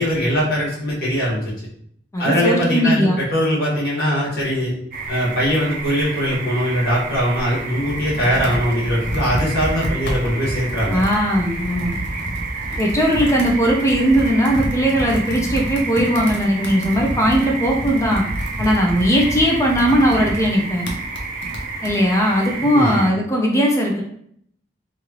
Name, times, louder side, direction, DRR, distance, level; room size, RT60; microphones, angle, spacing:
voice 1, 0.0-1.4 2.2-4.7 5.1-11.0 22.6-23.0, equal, 60° left, -7 dB, 1.4 m, -21 dB
voice 2, 2.1-3.2 10.9-12.0 12.8-18.2 18.6-20.9 21.8-24.0, equal, 15° left, -1 dB, 0.5 m, -18 dB
sound 1, 4.9-23.1, right 4 dB, 50° right, 0.5 m, -31 dB
Computer keyboard, 7.4-22.0, equal, 75° left, 0.6 m, -29 dB
3.1 x 2.4 x 2.9 m, 0.65 s
head